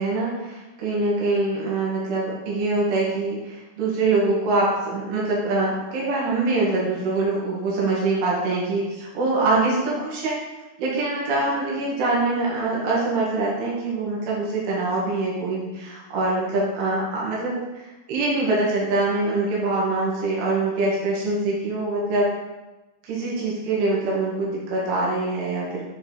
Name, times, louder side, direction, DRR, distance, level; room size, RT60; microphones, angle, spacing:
voice 1, 0.0-10.4 10.8-22.3 23.0-25.8, right 2 dB, 85° right, -5 dB, 3.6 m, -24 dB
7.4 x 4.6 x 3.1 m, 1.1 s
omnidirectional pair, 4.7 m